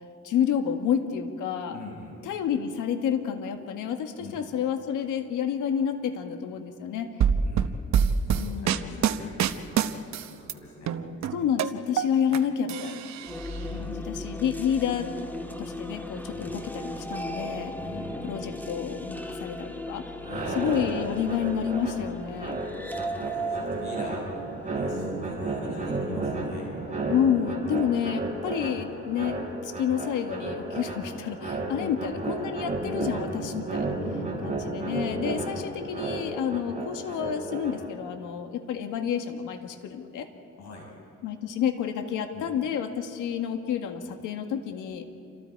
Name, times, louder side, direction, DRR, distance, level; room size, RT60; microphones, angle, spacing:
voice 1, 0.2-1.8 2.3-7.1 8.4-9.0 11.3-13.1 13.9-15.1 15.6-17.7 18.2-20.0 20.6-22.6 27.1-33.9 34.4-40.3 41.2-45.0, left 8 dB, 85° left, 6 dB, 1.9 m, -29 dB
voice 2, 1.7-2.2 4.2-4.4 7.4-7.8 8.2-11.0 12.3-12.4 13.6-13.9 16.3-16.5 17.7-18.2 20.1-20.8 22.8-24.3 24.7-26.7 31.7-32.0 34.0-34.5 35.5-35.7 40.6-40.9 42.3-42.5 44.1-44.2, left 3 dB, 65° left, -1 dB, 6.5 m, -44 dB
sound 1, 7.2-10.5 10.9-12.4 12.7-13.6, right 8 dB, 65° right, 1.0 m, -25 dB
sound 2, 13.2-25.4, equal, 5° left, 1.7 m, -37 dB
treadmill cut, 20.2-38.1, right 2 dB, 25° right, 6.5 m, -33 dB
28.5 x 25.5 x 4.8 m, 2.7 s
cardioid pair, 90°, 30 cm